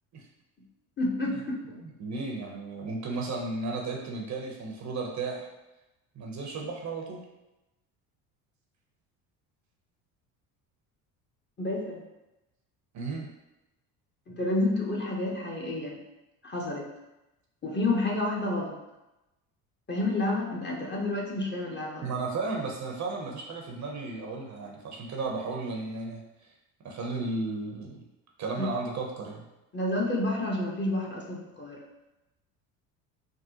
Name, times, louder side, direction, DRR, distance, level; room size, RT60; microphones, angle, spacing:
voice 1, 1.0-1.6 11.6-12.0 14.3-16.0 16.4-16.9 17.6-18.7 19.9-22.0 28.6-28.7 29.7-31.8, left 2 dB, 25° left, -2 dB, 0.8 m, -29 dB
voice 2, 1.7-5.5 6.2-7.2 12.9-13.3 22.0-26.2 26.8-28.0 28.4-29.4, right 3 dB, 40° right, 0 dB, 0.7 m, -34 dB
3.7 x 2.2 x 2.7 m, 0.97 s
hypercardioid pair, 75°, 44 cm